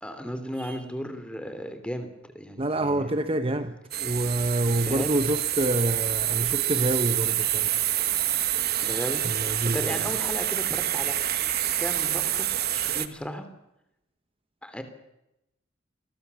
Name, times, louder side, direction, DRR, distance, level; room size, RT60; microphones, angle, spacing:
voice 1, 0.0-3.1 4.9-5.1 8.8-9.2 9.6-11.4 11.8-13.5 14.6-14.8, equal, 5° left, 2.9 m, -35 dB
voice 2, 2.6-7.8 9.2-10.0, right 1 dB, 30° right, 0.9 m, -27 dB
sound 1, 3.9-13.1, right 12 dB, 50° right, 1.4 m, -27 dB
29.5 x 22.5 x 7.0 m
head